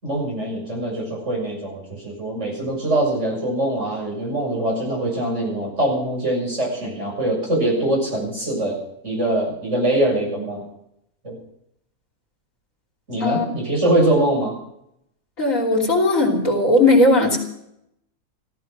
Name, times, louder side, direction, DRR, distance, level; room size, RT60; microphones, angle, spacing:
voice 1, 0.0-8.8 9.0-10.6 11.2-11.4 13.1-14.5, right 1 dB, 50° right, -2 dB, 7.5 m, -23 dB
voice 2, 15.4-17.4, left 2 dB, 60° left, 1 dB, 3.6 m, -17 dB
15.5 x 15.0 x 6.1 m, 0.77 s
omnidirectional pair, 1.6 m